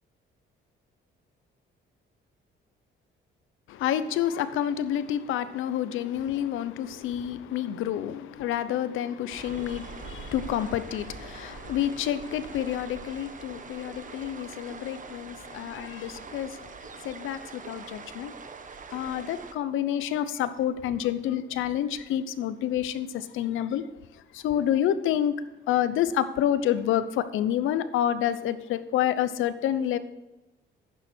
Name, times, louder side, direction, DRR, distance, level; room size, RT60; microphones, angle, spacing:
voice 1, 3.7-16.8 17.0-18.3 18.9-23.8 24.1-25.4 25.7-30.0, left 10 dB, 85° left, 13 dB, 0.8 m, -28 dB
sound 1, 9.3-19.5, right 5 dB, 40° right, 1.2 m, -43 dB
11.0 x 9.3 x 4.5 m, 1.0 s
cardioid pair, 90°, 20 cm